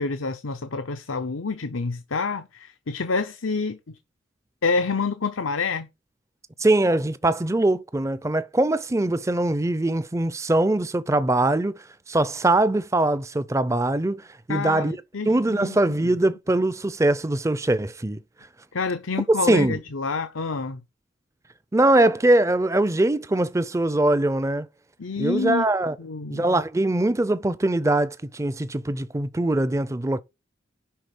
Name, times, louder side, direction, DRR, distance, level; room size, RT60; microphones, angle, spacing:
voice 1, 0.0-4.0 4.6-5.9 14.5-15.8 16.0-16.1 18.7-20.8 25.0-25.7 26.0-26.4, left 4 dB, 90° left, 0.8 m, -28 dB
voice 2, 6.6-14.2 14.5-15.0 15.3-18.2 19.5-19.8 21.7-24.7 25.2-26.0 26.3-30.2, right 2 dB, 15° right, 0.5 m, -22 dB
10.0 x 4.0 x 6.1 m
head